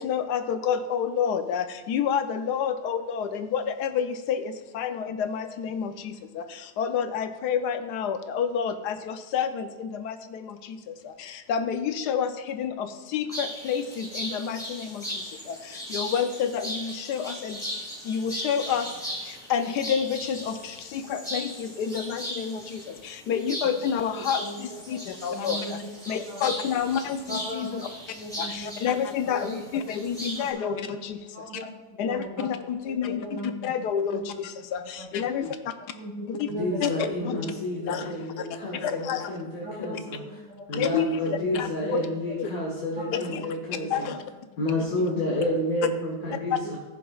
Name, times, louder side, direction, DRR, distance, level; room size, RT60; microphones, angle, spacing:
voice 1, 0.0-17.6 18.0-27.9 28.4-31.4 32.0-35.6 36.3-36.5 36.8-36.9 37.2-37.4 37.9-38.1 38.4-38.5 38.7-39.4 40.7-42.1 42.4-42.5 43.1-43.5 43.9-44.2 46.5-46.6, left 7 dB, 85° left, 9 dB, 1.3 m, -29 dB
sound 1, 13.3-30.5, equal, ahead, 2.5 m, -38 dB
voice 2, 23.7-25.7 26.3-26.7 27.3-27.8 28.1-28.7 29.3-29.6 30.4-30.8 31.3-31.7 32.0-32.5 32.8-34.2 34.9-35.1 35.8-38.4 38.9-39.0 39.6-40.8 41.2-42.3 42.9-43.4 43.7-44.0 46.6-46.7, right 1 dB, 60° right, -4 dB, 2.2 m, -39 dB
voice 3, 36.5-40.2 40.7-44.1 44.6-46.8, left 1 dB, 60° left, -3 dB, 1.7 m, -30 dB
14.5 x 7.0 x 2.4 m, 1.3 s
omnidirectional pair, 1.7 m